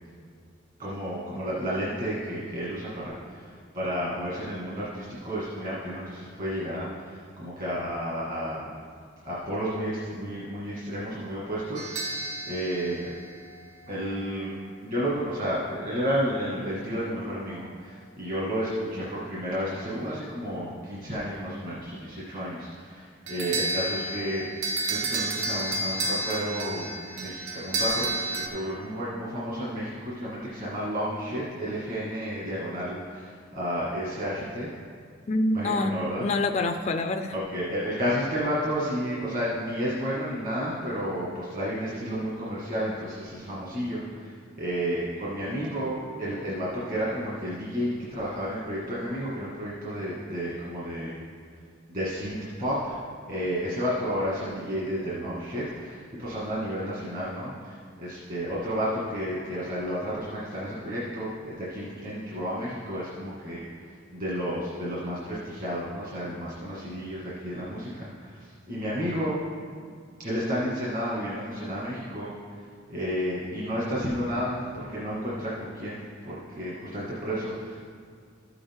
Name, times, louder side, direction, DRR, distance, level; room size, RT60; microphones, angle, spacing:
voice 1, 0.8-8.7 9.2-13.1 13.9-14.5 14.8-24.5 24.9-34.7 35.5-36.3 37.3-51.2 51.9-53.0 53.3-63.6 64.1-69.4 70.2-72.3 72.9-77.8, equal, 45° right, -7 dB, 1.7 m, -31 dB
sound 1, 11.8-14.0 23.3-28.5, right 2 dB, 80° right, 0.8 m, -31 dB
voice 2, 35.3-37.3, left 2 dB, 35° left, 6 dB, 0.3 m, -26 dB
13.5 x 6.9 x 3.6 m, 2.1 s
head